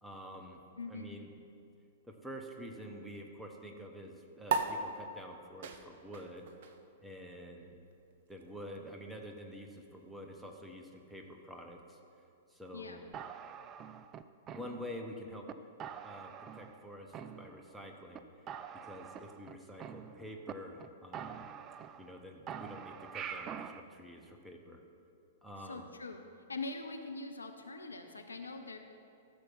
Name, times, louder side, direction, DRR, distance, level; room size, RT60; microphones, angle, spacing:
voice 1, 0.0-0.6 0.9-1.3 2.0-6.5 7.0-7.7 8.3-12.0 12.5-13.0 14.5-15.5 16.0-18.2 18.8-21.4 22.0-24.8 25.4-25.9, equal, 5° right, 2 dB, 1.1 m, -48 dB
voice 2, 0.8-1.2 12.7-13.0 25.6-26.2 26.5-28.8, left 3 dB, 75° left, 5 dB, 0.9 m, -43 dB
sound 1, 4.5-11.3, right 5 dB, 50° right, 0.7 m, -41 dB
sound 2, 13.1-15.1 15.5-15.6 15.8-16.8 17.1-17.8 18.1-18.2 18.5-20.5 20.8-20.9 21.1-22.2 22.5-23.8, right 8 dB, 25° right, 0.4 m, -45 dB
14.0 x 6.8 x 6.0 m, 2.5 s
figure-of-eight pair, 105°, 0 cm